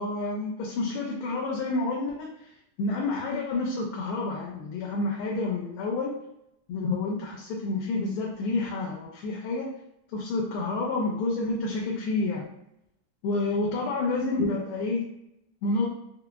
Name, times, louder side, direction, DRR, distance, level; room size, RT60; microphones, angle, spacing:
voice 1, 0.0-2.3 2.8-6.1 6.7-9.7 10.1-12.4 13.2-15.0 15.6-15.9, left 3 dB, 85° left, -1 dB, 1.5 m, -29 dB
4.6 x 2.1 x 2.2 m, 0.81 s
omnidirectional pair, 2.3 m